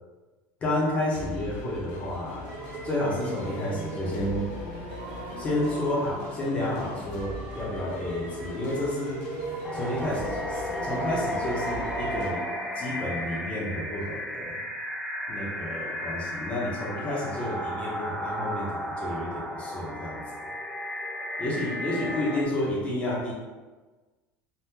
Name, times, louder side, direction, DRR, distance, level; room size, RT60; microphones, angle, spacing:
voice 1, 0.6-2.5 2.8-4.4 5.4-9.2 9.7-12.4 12.7-14.6 15.3-20.2 21.4-23.3, left 1 dB, 20° left, -4 dB, 0.8 m, -30 dB
sound 1, 1.0-12.3, left 3 dB, 90° left, 0.5 m, -42 dB
sound 2, 2.4-13.4, right 2 dB, 45° right, 0.7 m, -39 dB
sound 3, 9.6-22.4, equal, 5° left, 0.3 m, -34 dB
2.8 x 2.1 x 3.5 m, 1.3 s
cardioid pair, 160°, 6 cm